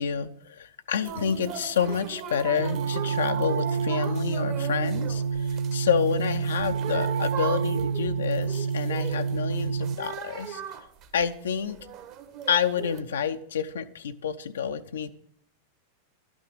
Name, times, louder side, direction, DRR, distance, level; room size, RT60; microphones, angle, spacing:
voice 1, 0.0-10.6 11.1-11.8 12.5-15.1, left 7 dB, 65° left, 7 dB, 0.6 m, -29 dB
sound 1, 1.0-13.0, right 8 dB, 40° right, 1.4 m, -39 dB
sound 2, 2.6-10.0, right 6 dB, 70° right, 0.4 m, -28 dB
12.0 x 6.2 x 8.4 m, 0.66 s
figure-of-eight pair, 90°, 0 cm